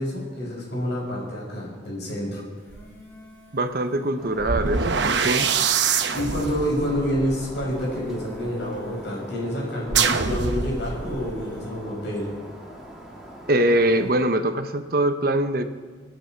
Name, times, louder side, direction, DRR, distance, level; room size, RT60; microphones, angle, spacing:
voice 1, 0.0-2.4 6.1-12.3, equal, 70° left, -3 dB, 6.0 m, -28 dB
sound 1, 2.4-4.2 4.9-6.7 7.5-9.3 10.0-11.7, left 1 dB, 15° left, 3.1 m, -51 dB
sound 2, 2.7-2.9 4.4-8.5 9.9-11.3, right 6 dB, 75° right, 0.9 m, -25 dB
voice 2, 3.5-5.5 13.5-15.6, right 1 dB, 55° right, 8 dB, 0.9 m, -23 dB
Shatter, 4.2-14.1, right 1 dB, 5° right, 2.5 m, -43 dB
26.0 x 9.1 x 4.6 m, 1.5 s
head